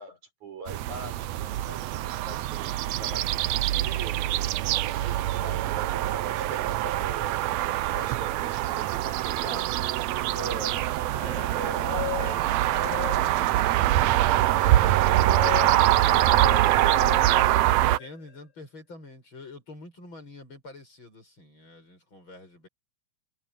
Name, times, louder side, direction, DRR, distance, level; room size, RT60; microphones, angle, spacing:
voice 1, 0.0-7.4 7.9-10.8 11.5-14.2 15.6-17.7, right 3 dB, 60° right, 8.7 m, -42 dB
sound 1, 0.7-18.0, right 14 dB, 85° right, 1.5 m, -24 dB
sound 2, 1.2-3.7 4.0-4.1 5.0-7.7, right 7 dB, 45° right, 3.1 m, -48 dB
sound 3, 10.9-13.6 14.0-18.4, left 15 dB, 65° left, 6.5 m, -38 dB
voice 2, 15.8-16.1 17.8-22.7, left 2 dB, 35° left, 8.7 m, -46 dB
omnidirectional pair, 3.9 m